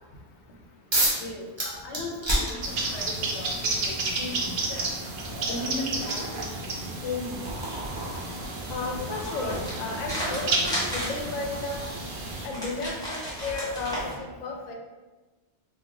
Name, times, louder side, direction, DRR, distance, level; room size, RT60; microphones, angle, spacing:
sound 1, 0.9-1.3 1.6-3.1 4.2-4.3 4.9-11.5, right 1 dB, 30° right, 0.6 m, -33 dB
voice 1, 1.2-4.9 5.3-6.5 7.0-7.4, left 3 dB, 80° left, -1 dB, 1.0 m, -36 dB
sound 2, 2.6-12.5, right 3 dB, 65° right, 0.8 m, -32 dB
sound 3, 7.5-14.1, equal, 5° left, 1.1 m, -36 dB
voice 2, 8.7-11.9 12.4-14.7, left 3 dB, 55° left, 1 dB, 0.5 m, -33 dB
3.2 x 2.1 x 3.7 m, 1.2 s
omnidirectional pair, 1.1 m